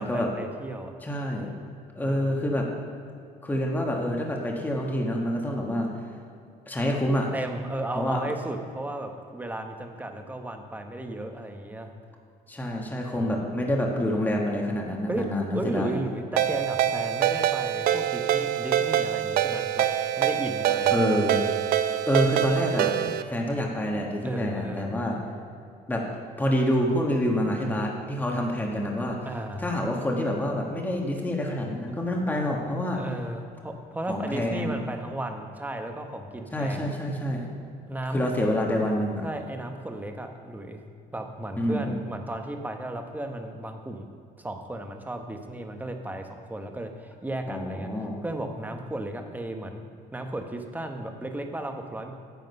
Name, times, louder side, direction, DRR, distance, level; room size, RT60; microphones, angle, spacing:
voice 1, 0.0-0.9 2.0-2.5 7.3-11.9 13.1-13.6 15.1-15.3 15.5-19.9 20.1-21.2 24.2-25.0 29.2-29.7 31.8-31.9 32.9-36.9 37.9-38.3 39.2-40.8 41.1-44.1 44.4-47.9 48.2-49.8 50.1-52.1, right 1 dB, 10° right, 4 dB, 1.0 m, -34 dB
voice 2, 1.0-1.5 1.9-2.7 3.4-6.0 6.7-7.3 7.9-8.2 12.5-16.0 20.9-21.4 21.9-23.0 23.3-25.2 25.9-26.0 26.4-29.2 29.6-33.0 34.1-34.8 36.5-37.5 38.1-39.2 41.6-41.9 47.5-48.2, left 1 dB, 10° left, -1 dB, 1.3 m, -27 dB
Ringtone, 16.4-23.2, right 11 dB, 65° right, 0.5 m, -25 dB
9.5 x 7.6 x 5.5 m, 2.5 s
cardioid pair, 110°, 17 cm